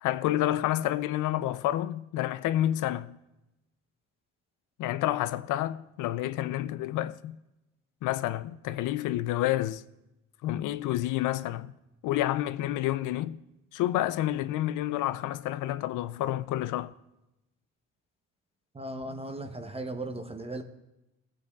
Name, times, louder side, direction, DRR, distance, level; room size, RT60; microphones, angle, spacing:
voice 1, 0.0-3.2 4.8-7.4 8.0-9.8 10.4-11.7 12.0-13.4 13.7-16.9, left 14 dB, 85° left, 0.5 m, -29 dB
voice 2, 18.7-20.6, right 2 dB, 20° right, 0.8 m, -37 dB
16.5 x 8.4 x 2.3 m
cardioid pair, 90°, 30 cm